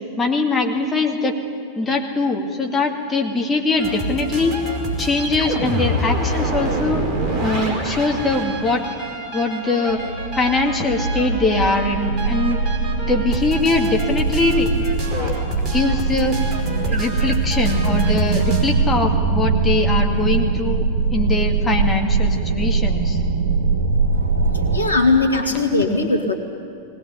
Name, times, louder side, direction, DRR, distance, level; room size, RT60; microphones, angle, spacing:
voice 1, 0.2-1.4 1.8-4.5 5.0-7.0 7.4-8.8 9.3-10.0 10.3-12.6 13.1-15.0 15.7-16.4 16.8-20.8 21.1-23.2, left 3 dB, 15° left, 1 dB, 2.4 m, -22 dB
sound 1, 3.8-18.6, equal, 25° right, 5.2 m, -27 dB
sound 2, 9.9-24.8, right 4 dB, 70° right, 2.0 m, -22 dB
voice 2, 24.1-26.4, left 3 dB, 80° left, 3 dB, 2.1 m, -20 dB
20.0 x 19.0 x 9.8 m, 2.3 s
figure-of-eight pair, 90°, 0 cm